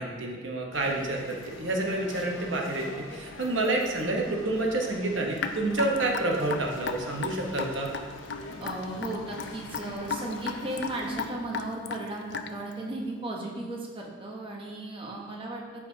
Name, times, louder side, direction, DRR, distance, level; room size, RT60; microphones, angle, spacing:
voice 1, 0.0-7.9, right 2 dB, 70° right, 0 dB, 1.0 m, -29 dB
sound 1, 0.7-11.3, left 2 dB, 75° left, 0.9 m, -43 dB
Raindrop / Drip, 5.4-12.7, left 6 dB, 60° left, 0.5 m, -35 dB
voice 2, 8.6-15.9, right 2 dB, 25° right, -1 dB, 1.0 m, -35 dB
13.0 x 4.8 x 2.8 m, 1.5 s
head